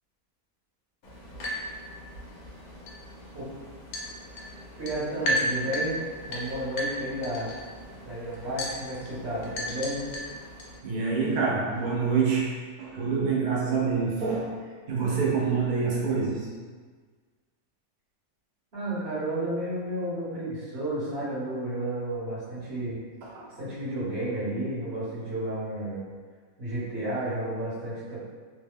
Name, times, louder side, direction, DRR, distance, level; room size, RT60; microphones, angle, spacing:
sound 1, 1.0-10.8, equal, 75° left, 1.1 m, -35 dB
voice 1, 4.8-6.0 6.2-7.5 8.0-10.0 18.7-23.0 23.6-26.0 26.6-28.2, right 1 dB, 45° right, -9 dB, 1.2 m, -32 dB
voice 2, 10.8-12.5 12.8-14.6 14.9-16.5 23.2-23.4, right 5 dB, 75° right, -5 dB, 0.4 m, -26 dB
3.1 x 2.1 x 3.5 m, 1.5 s
omnidirectional pair, 1.6 m